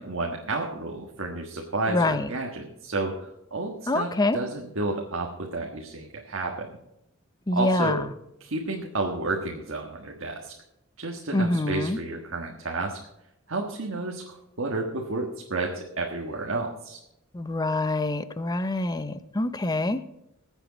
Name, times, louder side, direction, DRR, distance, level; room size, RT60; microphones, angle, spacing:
voice 1, 0.0-6.7 7.5-8.0 8.4-10.5 11.0-13.0 13.5-17.0, right 2 dB, 65° right, 0 dB, 1.5 m, -31 dB
voice 2, 1.9-2.3 3.9-4.4 7.5-8.1 11.3-12.0 17.3-20.0, left 2 dB, 20° left, 12 dB, 0.7 m, -25 dB
21.0 x 8.2 x 4.1 m, 0.83 s
head